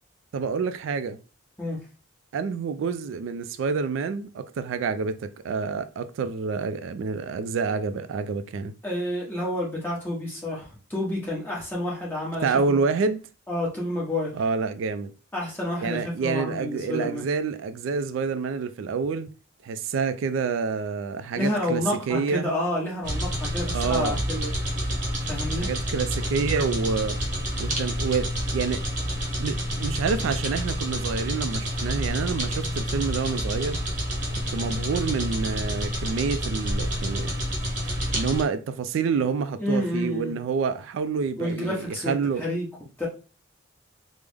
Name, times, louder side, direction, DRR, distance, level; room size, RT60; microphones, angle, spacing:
voice 1, 0.3-1.2 2.3-8.7 12.4-13.3 14.3-15.1 15.8-19.3 19.6-22.5 23.7-24.2 25.6-27.2 27.6-28.8 29.4-33.8 34.5-37.3 38.1-42.4, right 5 dB, 80° right, 0.3 m, -28 dB
voice 2, 8.8-12.8 13.5-14.3 15.3-17.2 21.3-24.5 25.3-25.7 39.6-40.3 41.4-42.7 43.0-43.1, left 1 dB, 10° left, 1.1 m, -29 dB
sound 1, 23.0-38.4, equal, 40° right, 0.8 m, -28 dB
3.3 x 2.0 x 3.4 m
head